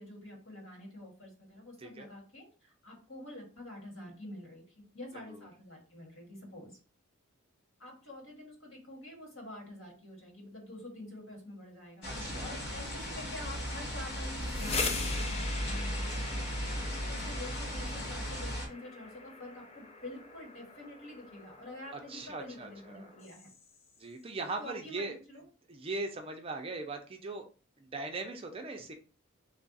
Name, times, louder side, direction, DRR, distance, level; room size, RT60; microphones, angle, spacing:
voice 1, 0.0-4.6 4.9-6.8 7.8-12.1 12.4-16.5 17.1-23.5 24.6-25.4, left 1 dB, 70° left, -1 dB, 1.8 m, -47 dB
sound 1, 12.0-18.7, equal, 50° left, 0.9 m, -36 dB
voice 2, 12.1-12.5 16.7-17.0 21.9-23.1 24.0-25.2 25.7-27.4 27.8-28.9, right 3 dB, 25° right, 4 dB, 0.5 m, -40 dB
sound 2, 14.3-24.0, left 4 dB, 30° left, 0.4 m, -42 dB
3.3 x 2.4 x 4.0 m, 0.35 s
head